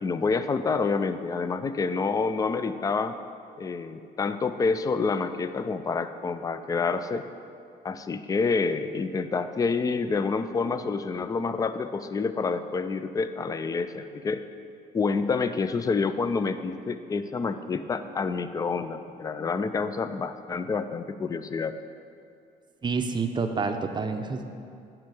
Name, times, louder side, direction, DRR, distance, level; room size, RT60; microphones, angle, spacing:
voice 1, 0.0-3.1 3.6-7.2 7.8-14.4 14.9-21.8, left 4 dB, 20° left, 11 dB, 0.4 m, -28 dB
voice 2, 22.8-24.5, right 4 dB, 25° right, 6 dB, 0.6 m, -28 dB
8.8 x 6.1 x 4.9 m, 2.5 s
cardioid pair, 110°, 17 cm